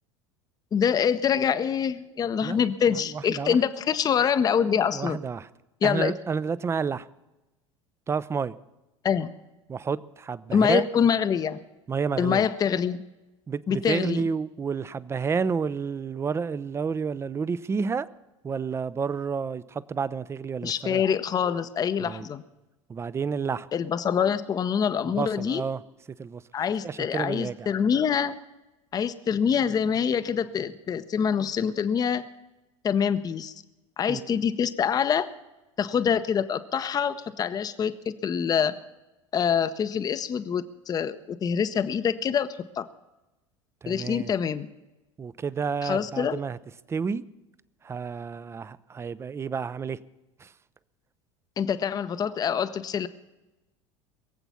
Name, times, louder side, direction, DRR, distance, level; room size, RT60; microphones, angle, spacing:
voice 1, 0.7-5.2 5.8-6.1 9.0-9.3 10.5-11.6 12.2-13.0 13.7-14.2 20.6-22.4 23.7-25.6 26.5-28.3 28.9-32.3 32.8-33.5 34.0-35.3 35.8-38.8 39.3-42.9 43.9-44.7 45.8-46.4 51.6-53.1, left 7 dB, 25° left, 13 dB, 0.7 m, -25 dB
voice 2, 4.9-5.5 5.8-7.1 8.1-8.6 9.7-10.9 11.9-12.5 13.5-18.1 18.4-21.0 22.0-22.3 22.9-23.7 25.2-25.8 26.2-26.4 26.8-27.7 34.1-34.3 43.8-44.3 45.2-46.6 46.9-47.2 47.8-50.0 50.4-50.5, right 5 dB, 15° right, 18 dB, 0.5 m, -30 dB
22.0 x 8.0 x 7.1 m, 1.0 s
figure-of-eight pair, 70°, 16 cm